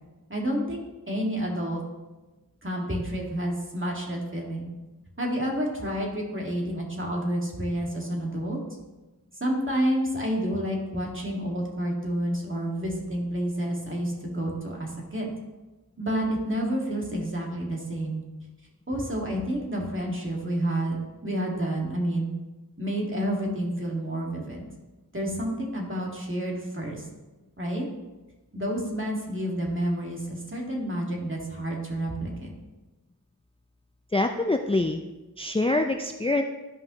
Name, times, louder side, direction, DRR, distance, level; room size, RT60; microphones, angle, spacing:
voice 1, 0.3-1.8 2.6-4.7 5.2-8.6 9.4-15.3 16.0-18.2 18.9-22.3 22.8-24.6 25.1-27.1 27.6-27.9 28.5-32.5, right 1 dB, 30° right, -2 dB, 2.2 m, -29 dB
voice 2, 34.1-35.0 35.4-36.4, left 2 dB, 15° left, 4 dB, 0.5 m, -25 dB
12.5 x 5.5 x 3.1 m, 1.1 s
wide cardioid pair, 45°, 38 cm